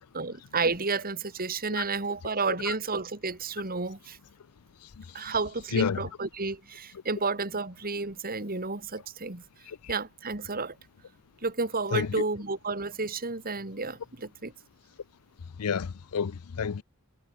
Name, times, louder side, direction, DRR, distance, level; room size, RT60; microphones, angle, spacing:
voice 1, 0.1-4.2 5.1-9.4 9.9-10.8 11.4-14.5, right 4 dB, 40° right, 2.6 m, -31 dB
voice 2, 5.7-6.1 9.7-9.8 11.9-12.2 15.6-16.8, left 6 dB, 85° left, 0.5 m, -29 dB
head